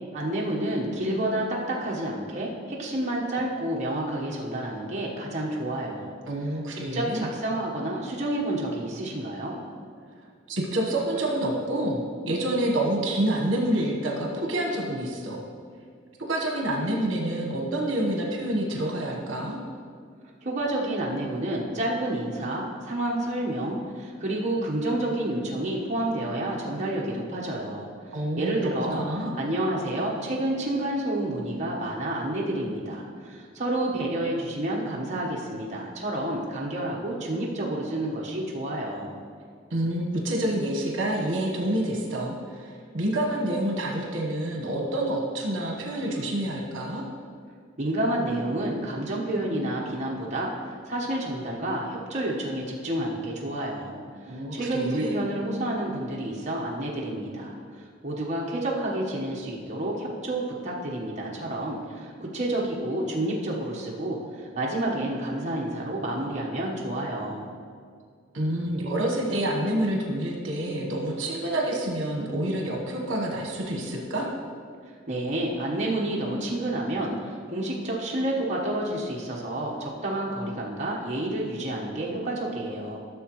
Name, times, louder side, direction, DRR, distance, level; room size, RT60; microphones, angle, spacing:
voice 1, 0.1-6.1 6.7-9.6 20.4-27.9 28.4-39.2 47.8-54.0 54.5-57.5 58.0-67.5 75.1-83.0, right 1 dB, 35° right, -4 dB, 1.2 m, -29 dB
voice 2, 6.2-7.3 10.5-15.4 16.3-19.6 28.1-28.5 28.9-29.4 39.7-47.0 54.3-55.1 68.3-74.3, right 1 dB, 70° right, 0 dB, 1.3 m, -28 dB
13.5 x 6.7 x 3.1 m, 2.1 s
head